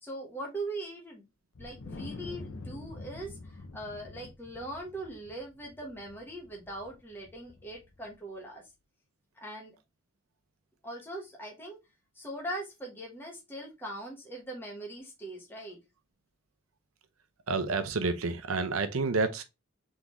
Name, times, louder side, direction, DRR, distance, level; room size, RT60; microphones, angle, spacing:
voice 1, 0.0-1.3 1.6-8.6 9.4-9.8 10.8-11.8 12.1-15.8, right 1 dB, 10° left, 1.1 m, -41 dB
Wind, 1.6-8.1, left 3 dB, 75° left, 0.6 m, -46 dB
voice 2, 17.5-19.4, right 3 dB, 85° right, 0.7 m, -29 dB
3.9 x 3.7 x 3.0 m
head